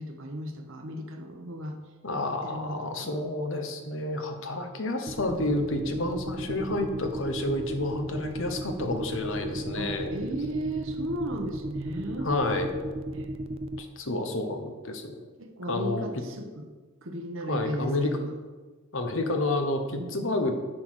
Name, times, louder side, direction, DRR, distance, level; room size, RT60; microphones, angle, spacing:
voice 1, 0.0-1.8 2.4-3.2 9.8-12.3 13.1-13.4 15.4-16.7 17.0-18.3 20.0-20.3, right 1 dB, 65° right, 3 dB, 1.1 m, -36 dB
voice 2, 2.0-10.1 12.2-12.7 13.8-15.2 15.7-16.1 17.5-18.2 18.9-20.5, left 2 dB, 60° left, 5 dB, 1.1 m, -30 dB
sound 1, 5.1-13.8, right 1 dB, 25° right, 0.4 m, -34 dB
10.5 x 4.1 x 6.4 m, 1.3 s
head